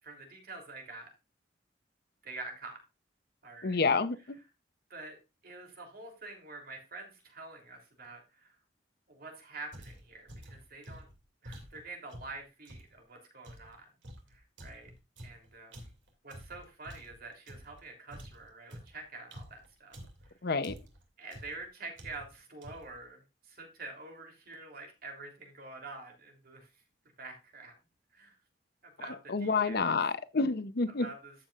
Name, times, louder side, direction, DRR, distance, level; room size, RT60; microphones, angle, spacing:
voice 1, 0.0-1.1 2.2-2.8 3.4-3.8 4.9-5.2 5.4-8.6 9.1-11.1 11.4-13.9 14.3-14.9 15.2-15.9 16.2-20.0 20.2-20.3 21.2-26.7 27.2-27.7 28.1-28.4 29.0-29.9 31.0-31.3, right 3 dB, 55° right, 3.2 m, -47 dB
voice 2, 3.6-4.4 20.4-20.7 29.3-31.1, left 4 dB, 60° left, 0.7 m, -29 dB
sound 1, 9.7-12.9 13.4-17.8 18.1-20.3 20.6-21.0 21.3-21.6 22.0-22.4 22.6-23.0, equal, 80° right, 2.6 m, -49 dB
13.5 x 7.4 x 2.5 m
head